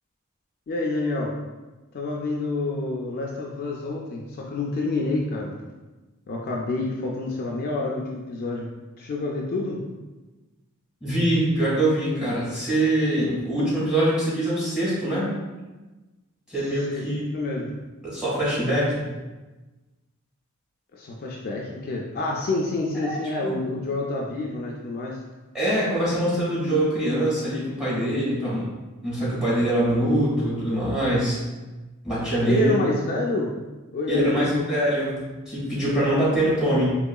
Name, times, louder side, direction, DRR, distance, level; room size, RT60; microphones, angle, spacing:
voice 1, 0.7-1.4 1.9-5.5 6.3-8.7 9.0-9.8 16.6-17.0 17.3-17.8 20.9-25.2 32.5-33.5 33.9-34.6, left 2 dB, 45° left, -1 dB, 0.3 m, -28 dB
voice 2, 11.0-15.3 16.5-17.2 18.0-19.0 23.0-23.2 23.4-23.5 25.5-28.7 29.0-31.4 32.0-32.7 34.1-36.9, right 1 dB, 5° right, -8 dB, 1.5 m, -23 dB
3.8 x 2.9 x 2.3 m, 1.2 s
head